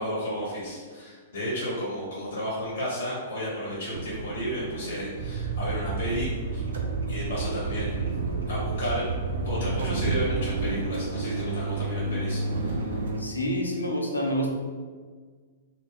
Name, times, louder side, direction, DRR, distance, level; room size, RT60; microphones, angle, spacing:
voice 1, 0.0-6.6 7.1-8.1 8.5-9.0 9.4-13.0, equal, 65° left, -6 dB, 0.8 m, -32 dB
sound 1, 3.9-13.2, right 2 dB, 65° right, 0.4 m, -32 dB
sound 2, 5.2-10.8, right 5 dB, 40° right, 0.7 m, -31 dB
voice 2, 13.2-14.5, equal, 80° left, 0 dB, 0.5 m, -28 dB
2.3 x 2.1 x 3.6 m, 1.5 s
figure-of-eight pair, 105°, 0 cm